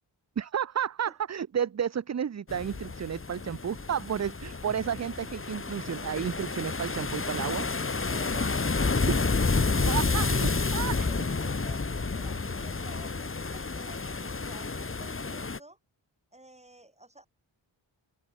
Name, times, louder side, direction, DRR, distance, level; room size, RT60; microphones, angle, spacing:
voice 1, 0.4-7.7 9.1-9.2 9.9-11.0, right 8 dB, 35° right, 0.5 m, -32 dB
sound 1, 2.5-15.6, left 4 dB, 25° left, 1.4 m, -30 dB
sound 2, 4.6-13.0, right 6 dB, 80° right, 7.9 m, -51 dB
voice 2, 8.1-9.4 9.8-10.4 11.1-15.8 16.3-17.3, right 1 dB, 15° right, 5.6 m, -52 dB
open air
wide cardioid pair, 155°, 50 cm